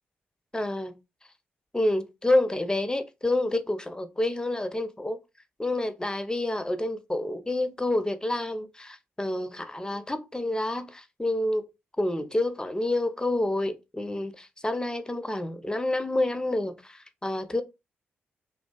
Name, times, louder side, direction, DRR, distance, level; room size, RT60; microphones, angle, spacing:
voice 1, 0.5-1.0 1.7-5.2 5.6-11.7 12.0-17.6, left 1 dB, 15° left, 0.5 m, -28 dB
2.4 x 2.4 x 2.2 m
supercardioid pair, 45°, 5 cm